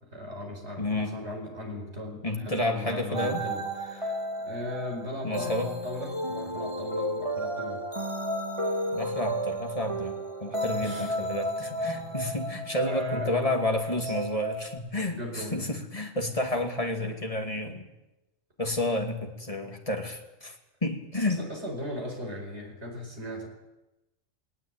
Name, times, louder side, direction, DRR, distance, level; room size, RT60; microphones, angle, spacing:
voice 1, 0.0-4.2 4.4-7.8 10.8-11.4 12.6-13.3 13.9-14.1 15.0-15.7 21.3-23.5, left 1 dB, 55° right, 2 dB, 5.3 m, -37 dB
voice 2, 0.8-1.2 2.2-3.4 5.2-5.7 8.9-17.9 18.6-20.6 20.8-21.4, left 1 dB, 25° left, 3 dB, 2.5 m, -30 dB
sound 1, 3.1-14.8, equal, 25° right, 2.2 m, -33 dB
sound 2, 4.7-12.0, right 4 dB, 85° right, 2.4 m, -56 dB
19.5 x 19.0 x 9.0 m, 0.99 s
omnidirectional pair, 1.3 m